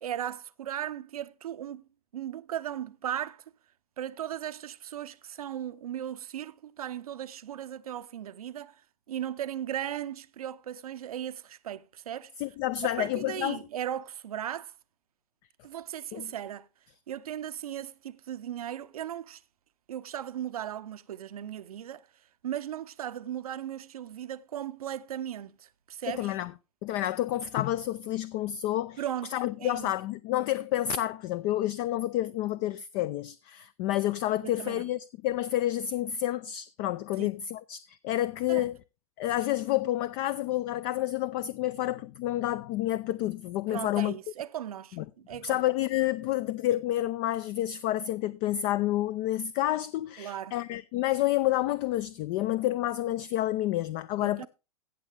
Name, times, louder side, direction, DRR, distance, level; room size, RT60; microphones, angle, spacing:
voice 1, 0.0-1.8 2.1-3.4 4.0-8.8 9.1-12.3 12.8-14.7 15.6-16.7 17.1-19.4 19.9-22.1 22.4-26.4 29.0-29.3 29.6-29.9 34.4-34.9 37.2-37.3 38.5-38.7 43.7-45.7 50.2-50.6 54.2-54.5, right 10 dB, 80° right, 0.7 m, -37 dB
voice 2, 12.4-13.6 16.1-16.3 26.1-26.5 26.8-29.0 29.3-38.8 39.2-44.1 45.0-45.1 45.4-54.5, left 14 dB, 45° left, 0.5 m, -29 dB
16.0 x 6.9 x 3.4 m
hypercardioid pair, 105°, 19 cm